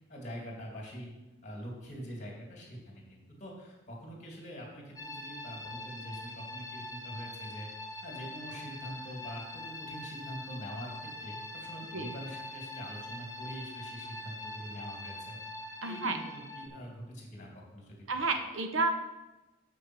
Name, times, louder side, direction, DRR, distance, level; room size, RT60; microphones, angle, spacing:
voice 1, 0.1-1.1 1.4-7.7 8.0-10.9 11.2-15.4 15.8-18.2, equal, 35° left, -1 dB, 2.4 m, -44 dB
sound 1, 5.0-16.7, left 1 dB, 15° left, 0.8 m, -43 dB
voice 2, 15.8-16.2 18.1-18.9, right 3 dB, 80° right, 7 dB, 0.8 m, -30 dB
7.1 x 5.9 x 6.1 m, 1.1 s
head